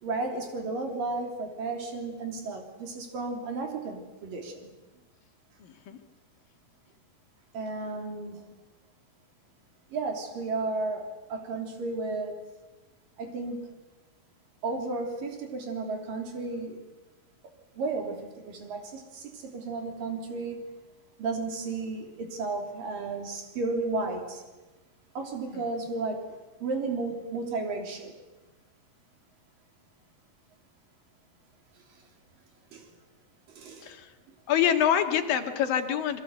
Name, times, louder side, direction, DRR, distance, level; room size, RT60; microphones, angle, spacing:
voice 1, 0.0-4.7 7.5-8.5 9.9-12.4 13.2-13.7 14.6-16.8 17.7-18.2 18.5-20.6 21.2-24.4 25.1-26.3 26.6-28.1 32.7-32.9 33.6-33.9, right 3 dB, 70° right, 4 dB, 5.0 m, -33 dB
voice 2, 5.6-6.0 25.5-25.6 33.8-34.1 34.5-36.2, left 9 dB, 75° left, 6 dB, 3.6 m, -26 dB
27.0 x 23.0 x 8.0 m, 1.1 s
omnidirectional pair, 4.0 m